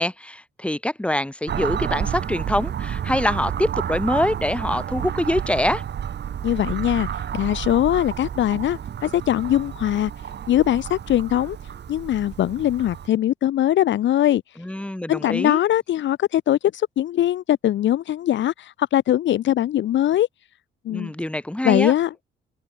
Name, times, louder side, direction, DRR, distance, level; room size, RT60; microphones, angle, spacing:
voice 1, 0.0-5.8 14.6-15.6 20.9-21.9, left 1 dB, 5° left, 2.7 m, -24 dB
sound 1, 1.5-13.1, right 9 dB, 60° right, 3.6 m, -30 dB
voice 2, 6.4-7.1 7.3-10.1 10.5-11.6 11.9-14.4 15.1-20.3 20.8-21.1 21.6-22.2, left 12 dB, 70° left, 1.0 m, -21 dB
open air
cardioid pair, 90°, 20 cm